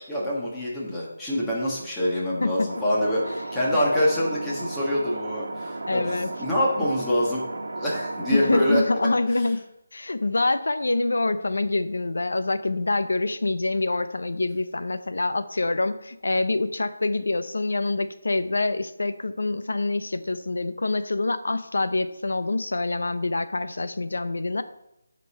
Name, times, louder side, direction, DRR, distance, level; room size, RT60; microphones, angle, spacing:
voice 1, 0.1-7.4 7.8-8.8 9.4-9.5, equal, 5° left, -6 dB, 1.4 m, -25 dB
sound 1, 2.7-8.7, right 2 dB, 70° right, 1.2 m, -34 dB
voice 2, 5.9-6.3 8.3-9.6 9.9-24.6, left 2 dB, 80° left, 11 dB, 0.6 m, -26 dB
12.0 x 5.3 x 4.3 m, 0.88 s
figure-of-eight pair, 175°, 0 cm